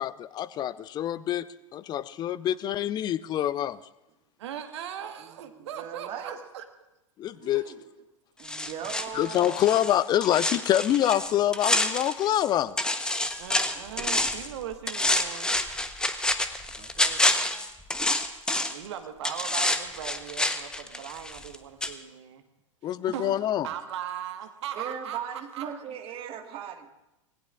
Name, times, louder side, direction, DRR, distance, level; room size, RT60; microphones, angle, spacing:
voice 1, 0.0-1.5 1.7-3.8 7.2-7.6 9.1-12.8 22.8-23.7, left 12 dB, 25° left, 18 dB, 0.6 m, -26 dB
voice 2, 4.4-6.6 7.5-7.8 13.4-15.6 18.7-22.4 22.8-25.8, right 9 dB, 55° right, 7 dB, 1.5 m, -39 dB
voice 3, 5.2-6.4 7.4-7.8 8.4-9.8 13.7-14.1 16.8-17.3 24.7-26.9, right 8 dB, 35° right, 5 dB, 1.8 m, -39 dB
sound 1, 8.4-12.5 12.8-14.5 14.9-18.9 19.2-21.6 21.8-21.9, left 1 dB, 5° left, 1.0 m, -28 dB
26.0 x 20.0 x 2.5 m, 0.94 s
figure-of-eight pair, 90°, 17 cm